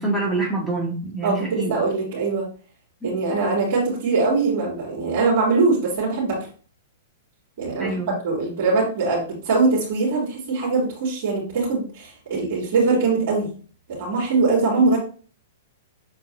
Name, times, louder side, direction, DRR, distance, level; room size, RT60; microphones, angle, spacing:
voice 1, 0.0-1.7 3.0-3.1 7.8-8.1, right 2 dB, ahead, -4 dB, 2.6 m, -26 dB
voice 2, 1.2-2.4 3.0-6.4 7.6-8.0 8.2-13.5 13.9-15.0, right 3 dB, 60° right, -8 dB, 3.2 m, -22 dB
7.6 x 4.5 x 2.8 m, 0.40 s
hypercardioid pair, 110°, 0 cm